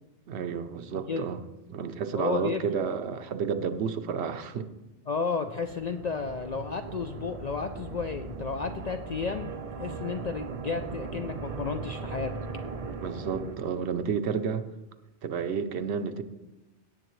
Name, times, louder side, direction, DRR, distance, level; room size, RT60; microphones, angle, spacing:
voice 1, 0.3-1.4 1.7-4.7 13.0-14.6 15.2-16.2, right 6 dB, 70° right, 10 dB, 0.9 m, -31 dB
voice 2, 2.2-2.6 5.1-9.5 9.8-12.3, left 5 dB, 60° left, 6 dB, 0.4 m, -32 dB
sound 1, 5.6-14.1, right 4 dB, 40° right, 0.6 m, -39 dB
17.5 x 7.8 x 3.1 m, 1.1 s
omnidirectional pair, 1.2 m